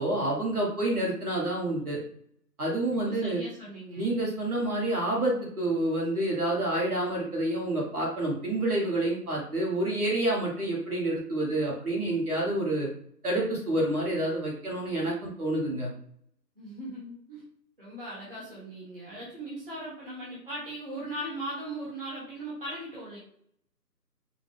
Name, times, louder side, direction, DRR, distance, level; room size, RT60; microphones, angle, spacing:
voice 1, 0.0-2.0 2.6-3.4 4.0-12.9 13.2-15.9, right 1 dB, 60° right, -3 dB, 1.4 m, -28 dB
voice 2, 2.9-4.1 16.5-17.4 17.8-23.2, right 1 dB, 35° right, -7 dB, 1.2 m, -39 dB
4.9 x 2.1 x 3.4 m, 0.65 s
figure-of-eight pair, 175°, 50 cm